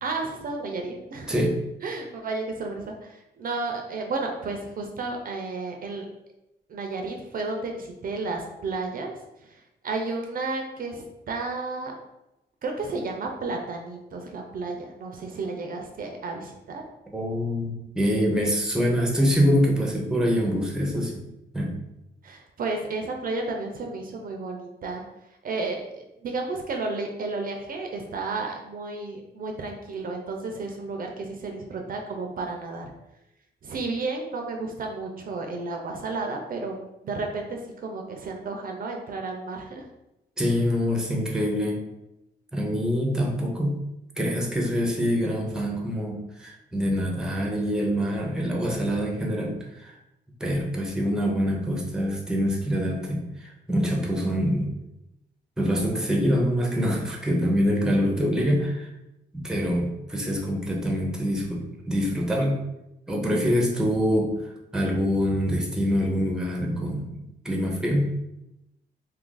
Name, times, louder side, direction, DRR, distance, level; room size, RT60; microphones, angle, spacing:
voice 1, 0.0-1.4 1.8-6.1 6.7-9.1 9.4-11.9 12.6-16.8 22.2-25.0 25.4-32.9 33.6-36.8 37.0-39.8, right 3 dB, 55° right, 2 dB, 0.5 m, -32 dB
voice 2, 17.1-21.1 21.5-21.8 40.4-41.8 42.5-43.8 44.2-49.9 50.4-54.7 55.6-58.9 59.4-62.6 63.1-68.1, equal, 5° right, -1 dB, 0.6 m, -25 dB
2.6 x 2.5 x 3.8 m, 0.91 s
cardioid pair, 110°, 18 cm